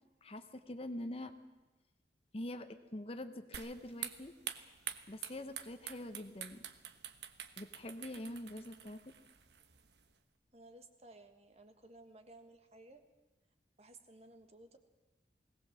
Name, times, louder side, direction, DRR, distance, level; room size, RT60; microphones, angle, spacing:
voice 1, 0.2-1.3 2.3-4.3 5.1-6.6 7.6-9.1, left 1 dB, 35° left, 9 dB, 0.9 m, -45 dB
sound 1, 3.5-10.1, right 9 dB, 75° right, 1.2 m, -47 dB
voice 2, 10.5-13.0 13.8-14.8, right 2 dB, 35° right, 7 dB, 1.6 m, -57 dB
20.0 x 18.0 x 7.6 m, 1.1 s
head